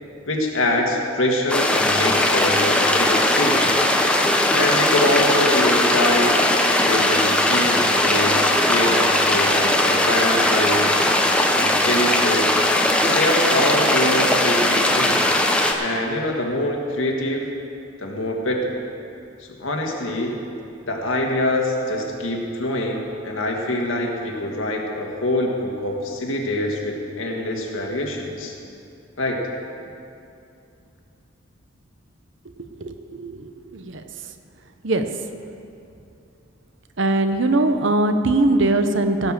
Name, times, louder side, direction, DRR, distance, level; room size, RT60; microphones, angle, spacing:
voice 1, 0.3-3.7 4.5-6.3 6.8-8.4 8.7-10.8 11.5-12.5 12.9-15.2 15.8-17.5 18.0-18.8 19.4-20.4 20.9-28.6 29.2-29.5, left 1 dB, 75° left, 0 dB, 1.7 m, -24 dB
sound 1, 1.5-15.7, left 1 dB, 5° left, 0.7 m, -19 dB
voice 2, 32.8-34.0 34.8-35.1 37.0-39.3, right 2 dB, 65° right, 8 dB, 0.8 m, -21 dB
16.5 x 5.7 x 7.5 m, 2.6 s
head